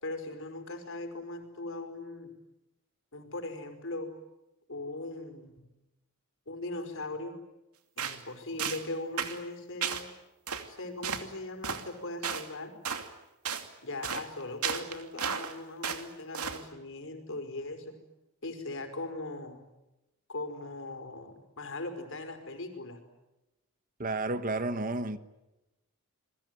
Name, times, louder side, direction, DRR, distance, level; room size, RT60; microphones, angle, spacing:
voice 1, 0.0-2.3 3.1-4.1 4.7-5.7 6.5-7.3 8.0-10.0 10.7-12.7 13.8-17.9 18.4-19.6 20.3-23.0, left 2 dB, 60° left, 5.1 m, -39 dB
sound 1, 8.0-8.2 8.6-8.9 9.2-9.4 9.8-10.0 10.5-10.7 11.0-11.2 11.6-11.8 12.2-12.5 12.8-13.1 13.4-13.7 14.0-14.2 14.6-15.5 15.8-16.1 16.3-16.6, right 7 dB, 90° right, 2.6 m, -33 dB
voice 2, 24.0-25.2, right 2 dB, 40° right, 1.2 m, -31 dB
28.5 x 21.5 x 9.5 m
head